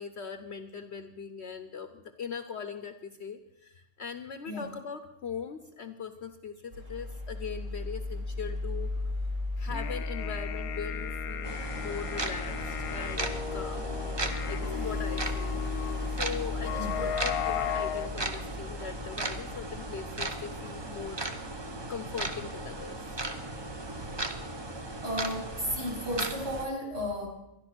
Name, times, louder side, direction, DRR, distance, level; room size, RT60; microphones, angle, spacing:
voice 1, 0.0-8.9 9.6-13.9 14.5-15.6 16.1-21.2 21.9-23.0, left 6 dB, 55° left, 9 dB, 0.9 m, -40 dB
sound 1, 6.7-26.6, left 2 dB, 60° right, 3.2 m, -38 dB
sound 2, 9.6-18.1, left 10 dB, 85° left, 1.2 m, -36 dB
sound 3, 11.4-26.7, right 2 dB, 25° right, 0.6 m, -37 dB
voice 2, 25.0-27.3, equal, 40° right, -1 dB, 3.8 m, -33 dB
12.5 x 11.0 x 6.1 m, 0.90 s
omnidirectional pair, 1.5 m